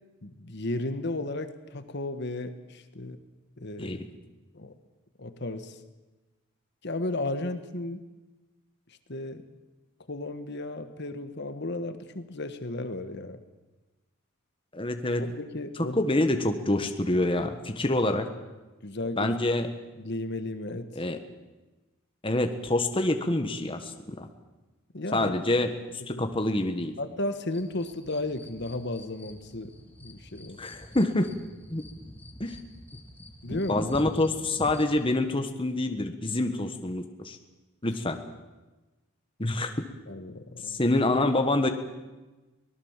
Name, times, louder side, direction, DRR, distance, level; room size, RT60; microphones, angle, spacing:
voice 1, 0.2-3.2 3.6-4.0 4.5-4.7 5.2-5.8 6.8-8.0 9.1-9.4 10.1-13.4 15.3-16.0 18.8-19.4 20.0-20.9 24.9-25.3 26.1-26.2 27.0-29.7 30.0-30.6 33.4-33.8 40.1-40.8, left 2 dB, 55° left, 9 dB, 1.4 m, -34 dB
voice 2, 14.7-15.2 15.8-18.3 19.2-19.7 20.9-21.2 22.2-24.3 25.1-25.7 26.1-26.9 30.6-31.3 31.7-31.8 32.4-32.6 33.7-37.4 37.8-38.2 39.4-39.7 40.6-41.7, left 2 dB, 25° left, 6 dB, 1.4 m, -26 dB
sound 1, 27.5-35.0, equal, 10° left, 2.0 m, -44 dB
24.5 x 18.5 x 7.4 m, 1.1 s
head